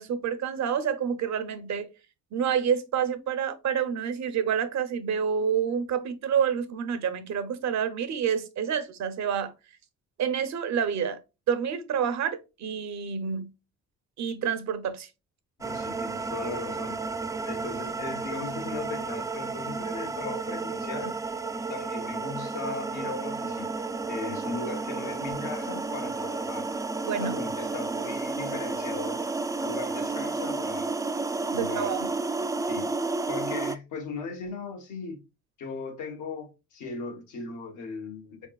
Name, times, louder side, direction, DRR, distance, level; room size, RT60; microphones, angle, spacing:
voice 1, 0.0-1.9 2.3-9.5 10.2-11.2 11.5-13.5 14.2-15.1 27.0-27.4 31.5-32.1, right 7 dB, 65° right, 0.8 m, -28 dB
voice 2, 15.6-17.0 17.4-21.2 21.7-23.7 24.1-26.6 27.2-29.2 29.6-30.9 31.5-31.9 32.6-32.9 33.3-35.2 35.6-38.5, left 4 dB, 80° left, 1.4 m, -38 dB
sound 1, 15.6-33.8, right 3 dB, 10° right, 0.3 m, -32 dB
4.0 x 3.5 x 2.3 m
cardioid pair, 90°, 30 cm